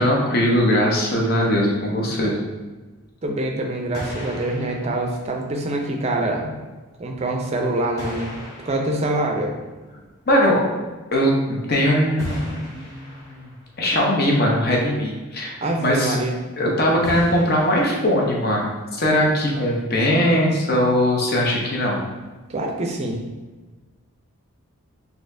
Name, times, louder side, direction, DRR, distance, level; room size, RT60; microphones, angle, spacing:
voice 1, 0.0-2.4 10.3-10.6 11.1-13.5 13.8-16.1 16.6-22.0, equal, 45° left, -2 dB, 0.7 m, -20 dB
voice 2, 3.2-6.6 7.0-8.3 8.6-9.5 15.6-16.3 22.5-23.2, right 1 dB, 30° right, 1 dB, 0.4 m, -25 dB
sound 1, 3.6-3.7 3.9-6.1 7.1-7.2 8.0-10.1 12.2-13.8 17.0-18.6, equal, 15° left, 1.0 m, -36 dB
4.1 x 2.8 x 2.6 m, 1.3 s
head